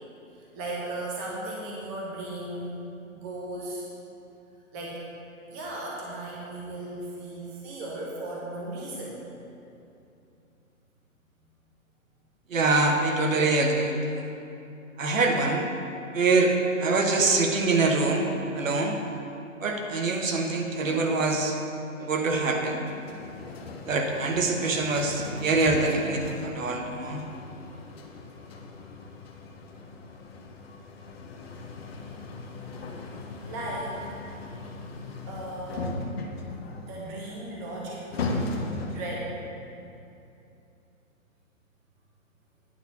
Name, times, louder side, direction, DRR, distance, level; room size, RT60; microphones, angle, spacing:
voice 1, 0.5-2.8 3.1-3.9 4.7-5.1 5.5-9.2 33.4-34.1 35.3-36.0 36.8-38.3 38.9-39.3, right 1 dB, 10° right, -4 dB, 0.6 m, -36 dB
voice 2, 12.5-14.3 15.0-15.7 16.1-16.5 16.8-18.3 18.5-19.0 19.6-21.5 22.0-22.8 23.9-27.3, right 3 dB, 65° right, 2 dB, 1.3 m, -24 dB
sound 1, 22.8-39.2, left 3 dB, 45° left, 1.0 m, -38 dB
9.2 x 4.2 x 6.9 m, 2.7 s
hypercardioid pair, 140°, 42 cm